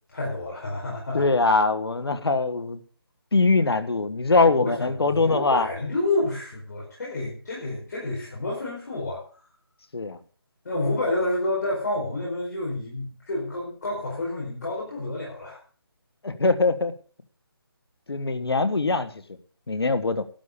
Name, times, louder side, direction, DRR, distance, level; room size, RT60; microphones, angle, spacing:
voice 1, 0.1-1.2 4.4-9.2 10.6-15.6, left 2 dB, 45° left, -5 dB, 5.1 m, -29 dB
voice 2, 1.1-2.8 3.3-5.7 9.9-10.2 16.2-16.9 18.1-19.1 19.7-20.2, left 3 dB, 75° left, 10 dB, 1.4 m, -22 dB
12.0 x 8.6 x 7.0 m, 0.43 s
figure-of-eight pair, 170°, 13 cm